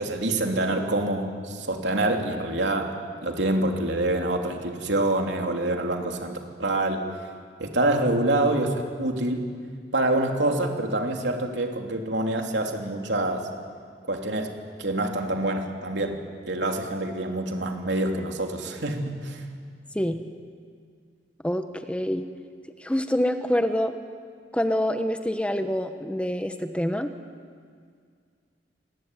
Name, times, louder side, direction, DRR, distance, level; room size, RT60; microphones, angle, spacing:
voice 1, 0.0-3.0 3.2-7.0 7.6-9.5 9.9-13.5 14.1-14.5 14.8-16.2 16.5-19.4, right 1 dB, 80° right, 2 dB, 3.1 m, -26 dB
voice 2, 21.4-22.3 22.8-23.9 24.5-27.1, equal, 5° left, 7 dB, 1.1 m, -26 dB
26.5 x 20.0 x 9.3 m, 2.1 s
head